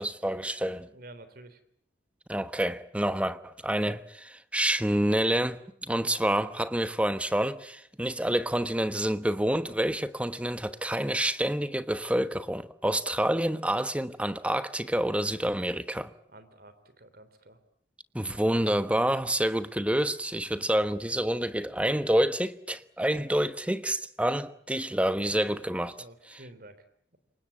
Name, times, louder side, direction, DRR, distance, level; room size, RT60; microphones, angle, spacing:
voice 1, 0.0-0.9 2.3-16.1 18.1-26.0 26.3-26.4, right 1 dB, 5° right, 1.1 m, -28 dB
voice 2, 0.9-1.6 16.3-17.6 25.4-25.6 26.0-26.8, right 1 dB, 55° right, 3.5 m, -50 dB
27.5 x 24.0 x 8.4 m
head